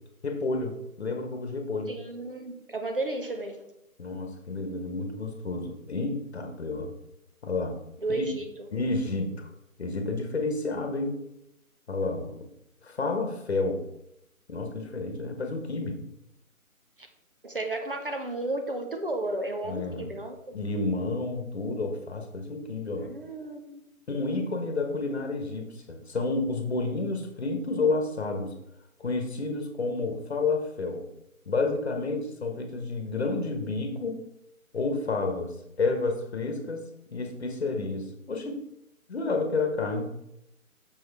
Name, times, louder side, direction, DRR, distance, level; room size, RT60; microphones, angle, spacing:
voice 1, 0.2-1.9 4.0-6.9 7.4-7.8 8.1-8.2 8.7-9.5 9.8-11.3 11.9-12.5 12.8-13.8 14.5-16.0 19.6-20.1 20.5-23.1 24.1-28.6 29.0-31.1 31.5-34.2 34.7-38.7 39.1-40.1, left 3 dB, 50° left, 4 dB, 1.2 m, -30 dB
voice 2, 1.9-3.6 8.0-8.5 17.0-17.1 17.4-20.4 22.9-23.8, right 2 dB, 40° right, 5 dB, 0.7 m, -33 dB
6.3 x 6.2 x 3.4 m, 0.83 s
figure-of-eight pair, 165°, 43 cm